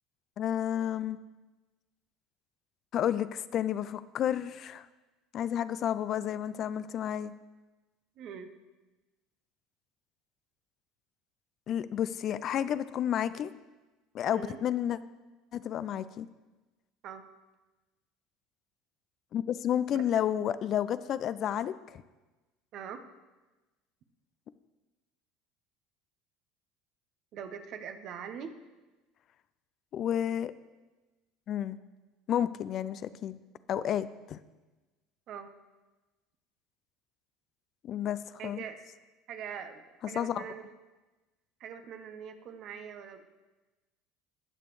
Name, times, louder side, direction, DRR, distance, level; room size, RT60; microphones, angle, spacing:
voice 1, 0.4-1.2 2.9-4.9 5.3-7.3 11.7-13.5 14.1-15.0 15.5-16.3 19.3-22.0 29.9-30.5 31.5-31.8 32.3-33.4 33.7-34.4 37.8-38.6 40.1-40.5, left 10 dB, 50° left, 14 dB, 0.4 m, -31 dB
voice 2, 8.2-8.5 14.3-14.6 17.0-17.3 22.7-23.1 27.3-28.6 35.3-35.5 38.4-38.9 39.3-40.7 41.6-43.2, right 7 dB, 55° right, 8 dB, 0.9 m, -42 dB
19.0 x 6.8 x 3.2 m, 1.2 s
hypercardioid pair, 75°, 0 cm